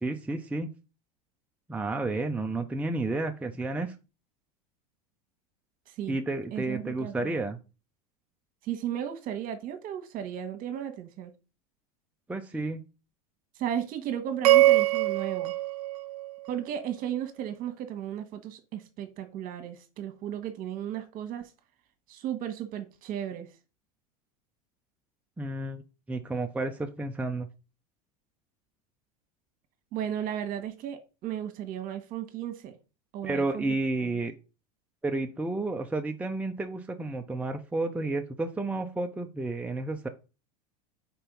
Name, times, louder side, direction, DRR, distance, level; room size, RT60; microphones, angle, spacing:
voice 1, 0.0-0.7 1.7-3.9 6.1-7.6 12.3-12.8 25.4-25.8 26.1-27.5 33.2-34.3 35.0-40.1, right 2 dB, 5° right, 0.7 m, -31 dB
voice 2, 5.9-6.2 6.5-7.3 8.6-11.3 13.6-15.5 16.5-21.5 22.1-23.5 29.9-32.8 33.1-33.6 34.0-34.2, right 10 dB, 45° right, 1.5 m, -35 dB
sound 1, 14.4-16.8, right 15 dB, 80° right, 0.7 m, -23 dB
4.6 x 4.2 x 5.3 m
hypercardioid pair, 95°, 19 cm